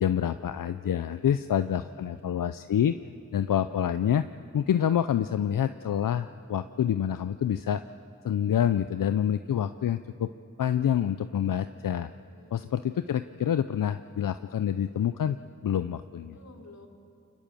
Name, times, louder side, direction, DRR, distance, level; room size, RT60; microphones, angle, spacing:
voice 1, 0.0-3.0 3.3-4.3 4.5-7.8 8.2-10.3 10.6-12.1 12.5-16.3, left 9 dB, 85° left, 11 dB, 0.5 m, -27 dB
voice 2, 1.1-2.3 12.3-12.8 16.3-16.9, left 2 dB, 55° left, 1 dB, 3.9 m, -54 dB
29.0 x 25.0 x 7.0 m, 2.6 s
cardioid pair, 40°, 32 cm